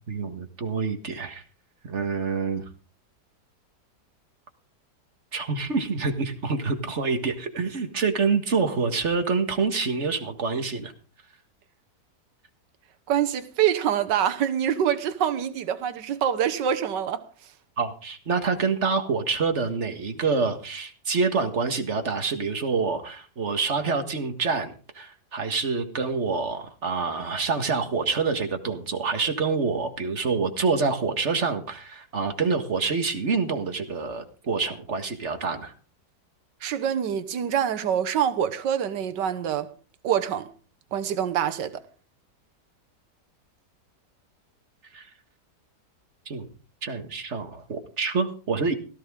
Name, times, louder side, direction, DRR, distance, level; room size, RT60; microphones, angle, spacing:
voice 1, 0.1-1.4 1.8-2.6 5.3-10.9 17.8-35.7 44.9-45.1 46.3-46.5 46.8-48.7, right 4 dB, 40° right, 1.9 m, -27 dB
voice 2, 13.1-17.2 36.6-39.7 40.0-40.5 40.9-41.8, right 9 dB, 85° right, 1.6 m, -25 dB
17.0 x 14.0 x 3.7 m
omnidirectional pair, 1.8 m